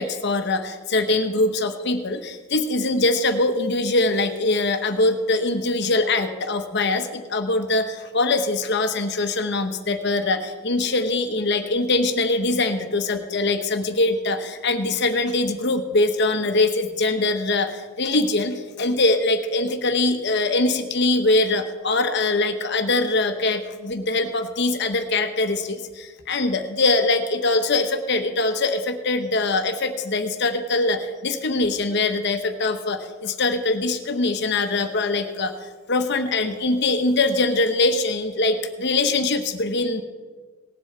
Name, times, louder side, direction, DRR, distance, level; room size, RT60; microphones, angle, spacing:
voice 1, 0.0-35.5 35.9-40.0, left 2 dB, 60° left, 7 dB, 1.0 m, -22 dB
18.5 x 7.8 x 4.6 m, 1.4 s
head